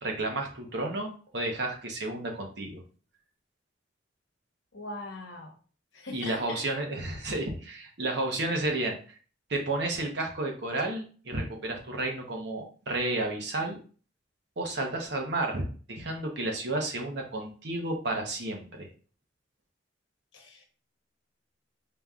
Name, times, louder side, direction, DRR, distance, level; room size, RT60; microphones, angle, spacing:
voice 1, 0.0-2.8 6.1-9.0 9.5-13.8 14.6-18.9, right 2 dB, 65° right, 2 dB, 1.0 m, -32 dB
voice 2, 4.7-5.5 5.9-6.6 20.3-20.6, left 2 dB, 80° left, 2 dB, 1.0 m, -41 dB
5.2 x 2.9 x 2.4 m, 0.40 s
head